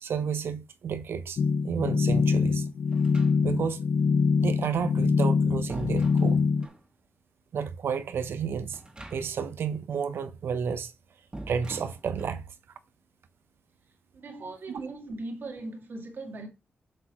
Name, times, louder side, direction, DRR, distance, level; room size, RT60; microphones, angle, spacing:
voice 1, 0.0-1.4 1.6-2.7 3.4-3.8 4.4-6.4 7.5-8.8 9.1-10.9 11.5-12.4 14.7-14.8, right 6 dB, 80° right, 0.8 m, -31 dB
sound 1, 1.4-6.7, left 5 dB, 70° left, 0.6 m, -24 dB
sound 2, 2.9-3.8 5.0-6.9 8.7-9.5 9.8-9.9 11.3-12.4, right 2 dB, 25° right, 1.6 m, -44 dB
voice 2, 14.2-16.5, right 2 dB, 60° right, 2.1 m, -39 dB
7.7 x 6.3 x 3.0 m
cardioid pair, 90°, 4 cm